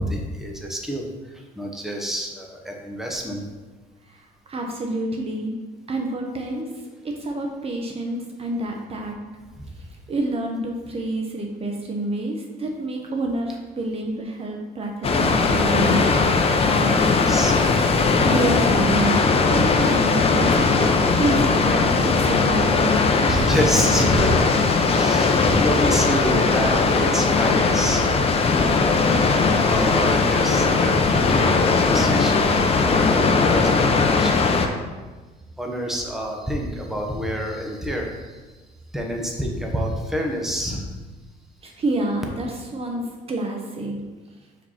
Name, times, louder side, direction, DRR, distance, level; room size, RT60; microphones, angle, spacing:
voice 1, 0.0-3.4 9.6-9.7 17.1-17.6 18.1-18.3 22.6-22.7 23.0-34.5 35.6-38.4 38.9-40.9, equal, ahead, 0 dB, 1.0 m, -28 dB
voice 2, 4.1-5.5 5.9-6.7 7.0-9.2 9.8-16.1 16.6-17.1 18.2-20.9 21.2-22.9 41.6-43.0 43.3-44.0, right 2 dB, 35° right, 1 dB, 0.9 m, -28 dB
Water, 15.0-34.7, left 4 dB, 35° left, 0.7 m, -19 dB
4.8 x 4.6 x 5.7 m, 1.3 s
cardioid pair, 110°, 17 cm